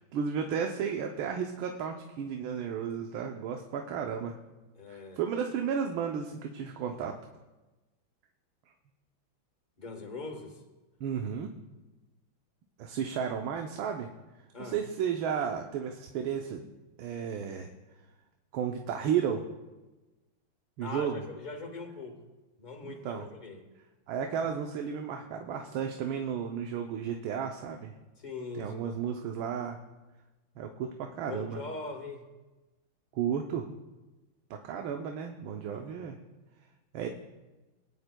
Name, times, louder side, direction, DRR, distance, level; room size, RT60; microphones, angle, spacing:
voice 1, 0.1-4.4 4.9-7.2 11.0-11.5 12.8-14.1 14.6-16.6 17.0-17.7 18.5-19.5 20.8-21.2 22.8-23.2 24.1-27.9 28.6-29.8 30.6-31.6 33.1-33.7 34.5-36.2 36.9-37.1, right 7 dB, 80° right, 3 dB, 1.5 m, -33 dB
voice 2, 4.7-5.2 9.8-10.6 14.5-14.8 20.8-22.2 22.6-23.6 28.2-29.0 31.3-32.3 35.7-36.0 37.0-37.1, left 3 dB, 30° left, 4 dB, 1.0 m, -41 dB
20.5 x 9.7 x 2.2 m, 1.1 s
omnidirectional pair, 2.2 m